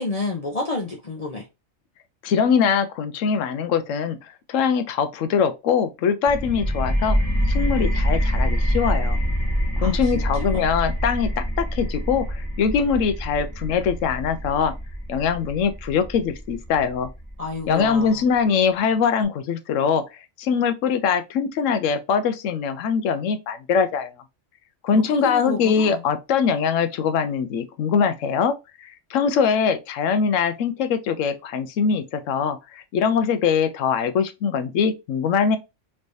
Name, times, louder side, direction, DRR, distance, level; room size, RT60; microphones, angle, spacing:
voice 1, 0.0-1.5 9.8-10.6 17.4-18.3 24.9-26.0, left 3 dB, 40° left, 0.6 m, -30 dB
voice 2, 2.2-7.2 7.5-9.2 9.8-14.7 15.1-17.1 17.7-20.0 20.4-24.1 24.8-35.6, left 6 dB, 80° left, 1.0 m, -22 dB
sound 1, 6.3-17.7, equal, 15° left, 1.6 m, -25 dB
3.3 x 3.2 x 2.6 m
omnidirectional pair, 1.3 m